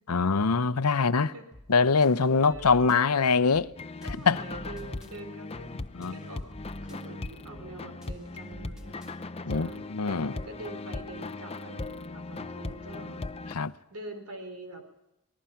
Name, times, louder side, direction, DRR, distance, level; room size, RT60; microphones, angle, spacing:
voice 1, 0.1-1.3 1.7-3.7 4.3-4.4 5.9-6.1 9.4-10.3 13.5-13.7, left 4 dB, 85° left, 0.8 m, -23 dB
voice 2, 0.9-1.5 2.2-2.9 4.0-5.7 6.1-6.4 6.8-9.2 9.5-9.9 10.3-13.3 13.9-14.8, right 2 dB, 80° right, 4.1 m, -45 dB
sound 1, 1.5-1.7 2.0-3.0 3.5-3.7 4.0-5.1 5.5-5.7 6.0-7.0 7.5-7.7 8.0-9.1, equal, 5° right, 3.0 m, -48 dB
sound 2, 3.8-13.5, left 2 dB, 25° left, 0.7 m, -38 dB
26.5 x 19.5 x 5.8 m
head